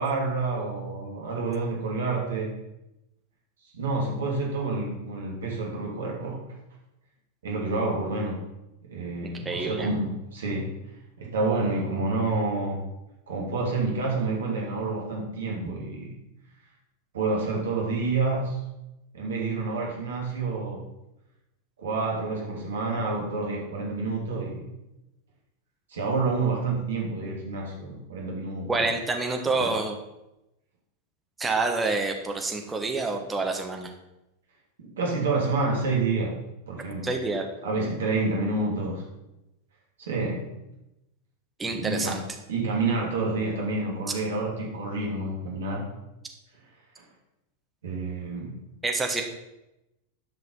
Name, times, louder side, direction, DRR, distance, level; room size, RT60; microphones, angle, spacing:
voice 1, 0.0-2.5 3.7-6.5 7.4-8.4 8.9-10.8 11.2-12.8 13.3-16.1 17.1-18.6 19.1-20.9 21.8-24.7 25.9-28.9 29.6-29.7 34.8-36.4 36.7-37.1 37.6-39.1 40.0-40.5 41.8-42.2 42.5-45.9 47.0-47.1 47.8-48.6, right 3 dB, 65° right, -2 dB, 2.9 m, -28 dB
voice 2, 9.2-9.9 28.7-29.9 31.4-33.9 37.0-37.4 37.8-38.0 41.6-42.2 48.8-49.2, right 3 dB, 15° right, 3 dB, 1.5 m, -28 dB
10.5 x 5.9 x 5.6 m, 0.92 s
figure-of-eight pair, 90°, 0 cm